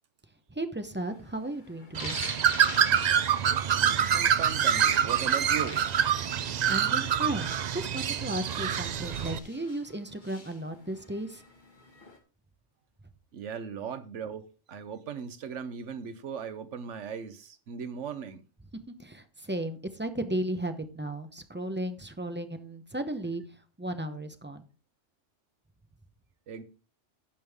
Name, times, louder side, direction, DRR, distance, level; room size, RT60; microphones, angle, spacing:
voice 1, 0.6-2.2 6.7-11.4 19.0-23.4 23.8-24.6, right 1 dB, 10° right, 0.7 m, -35 dB
sound 1, 1.0-12.2, left 3 dB, 40° left, 1.8 m, -47 dB
Bird, 1.9-9.4, right 8 dB, 55° right, 0.4 m, -26 dB
voice 2, 4.1-5.9 13.3-18.4 26.5-26.6, right 7 dB, 80° right, 1.2 m, -38 dB
16.0 x 5.4 x 3.5 m
omnidirectional pair, 1.2 m